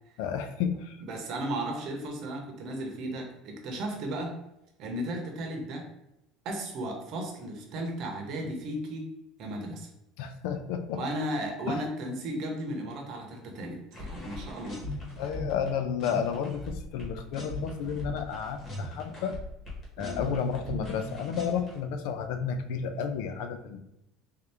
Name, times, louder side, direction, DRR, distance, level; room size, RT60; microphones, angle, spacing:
voice 1, 0.2-1.0 10.2-11.0 11.7-11.8 15.2-19.4 20.0-23.8, left 7 dB, 75° left, 8 dB, 0.4 m, -32 dB
voice 2, 1.0-4.4 4.8-5.9 6.4-9.1 9.4-9.9 10.9-14.9 20.0-20.2, right 1 dB, 50° right, 2 dB, 0.9 m, -35 dB
sound 1, 13.9-15.7 16.0-21.8, left 1 dB, 30° left, 1.5 m, -39 dB
3.6 x 2.8 x 3.4 m, 0.85 s
cardioid pair, 150°, 0 cm